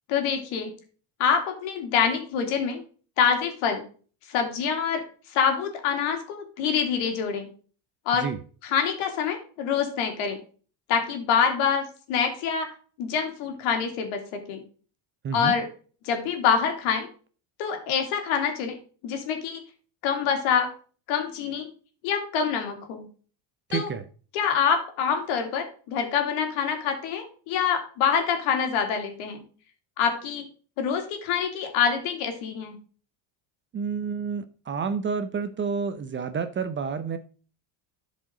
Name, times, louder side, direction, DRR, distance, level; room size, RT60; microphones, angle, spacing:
voice 1, 0.1-0.7 1.2-2.8 3.2-3.8 4.3-5.0 5.3-7.5 8.1-8.3 8.6-10.4 10.9-12.7 13.0-14.6 15.3-15.7 16.0-17.1 17.6-18.8 19.0-19.6 20.0-20.7 21.1-21.7 22.0-23.1 23.7-23.9 24.3-29.4 30.0-30.5 30.8-32.8, left 7 dB, 75° left, 2.5 m, -26 dB
voice 2, 15.2-15.5 23.7-24.0 33.7-37.2, right 6 dB, 25° right, 0.5 m, -29 dB
11.5 x 5.1 x 3.7 m
cardioid pair, 130°, 48 cm